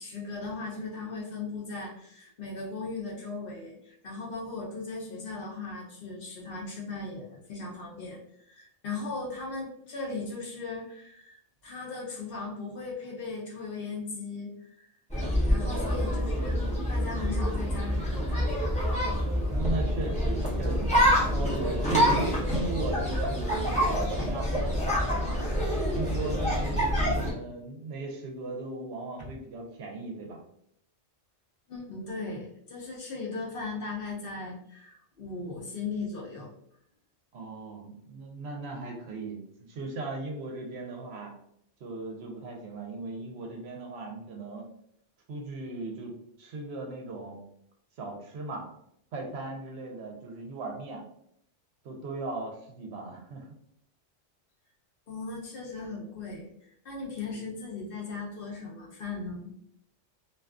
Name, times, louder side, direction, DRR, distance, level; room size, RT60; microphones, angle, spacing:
voice 1, 0.0-14.9 15.5-18.5 29.2-29.3 31.7-36.5 55.1-56.5 56.8-59.5, left 3 dB, 60° left, -3 dB, 0.7 m, -38 dB
sound 1, 15.1-27.3, equal, 10° left, 0.5 m, -27 dB
voice 2, 15.6-16.1 19.5-20.9 21.3-25.4 25.9-30.4 37.3-41.3 41.8-44.7 45.3-47.4 48.0-48.6 49.1-51.0 51.8-53.5, right 2 dB, 70° right, 1 dB, 0.8 m, -37 dB
2.4 x 2.3 x 2.3 m, 0.72 s
omnidirectional pair, 1.2 m